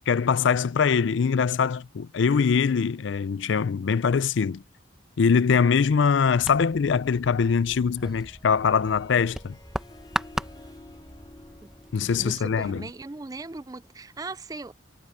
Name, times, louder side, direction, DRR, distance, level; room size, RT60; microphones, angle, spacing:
voice 1, 0.1-4.6 5.2-9.6 11.9-12.8, left 6 dB, 75° left, 0.4 m, -23 dB
sound 1, 6.4-12.9, equal, 5° right, 1.0 m, -38 dB
Harp, 8.0-13.5, left 2 dB, 20° left, 1.0 m, -52 dB
voice 2, 12.0-14.7, right 3 dB, 20° right, 0.4 m, -38 dB
head